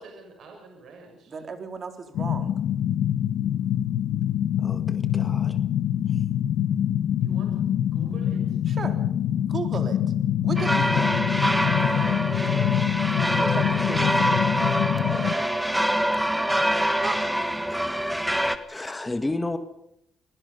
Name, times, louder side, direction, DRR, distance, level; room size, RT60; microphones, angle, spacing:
voice 1, 0.0-1.3 7.2-8.6 11.8-13.0 14.9-16.6, right 3 dB, 65° right, 2 dB, 6.6 m, -45 dB
voice 2, 1.3-2.5 8.6-9.0 9.3-10.1 10.4-11.3 13.4-14.4 17.0-17.2, right 5 dB, 45° right, 6 dB, 4.0 m, -35 dB
sound 1, 2.1-15.3, left 10 dB, 80° left, 1.3 m, -25 dB
voice 3, 4.6-5.6 17.7-18.2 18.7-19.6, left 2 dB, 15° left, 7 dB, 1.8 m, -32 dB
sound 2, 10.6-18.6, equal, 5° right, 1.9 m, -25 dB
27.0 x 20.0 x 5.5 m, 0.78 s
cardioid pair, 90°, 0 cm